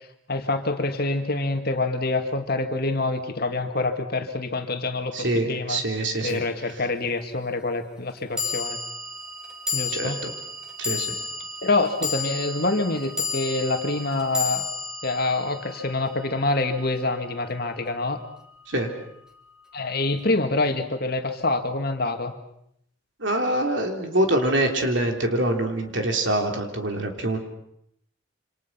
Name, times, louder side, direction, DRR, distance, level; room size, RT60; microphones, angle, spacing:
voice 1, 0.3-5.8 6.2-8.8 9.7-10.2 11.6-14.6 15.0-18.2 19.7-22.3, left 2 dB, 50° left, 6 dB, 2.2 m, -26 dB
voice 2, 5.1-6.4 9.9-10.3 10.8-11.1 18.7-18.9 23.2-27.4, right 1 dB, 65° right, 4 dB, 3.6 m, -24 dB
sound 1, 6.3-6.4 8.4-16.8, left 4 dB, 5° right, 3.4 m, -32 dB
28.0 x 26.5 x 5.9 m, 0.74 s
head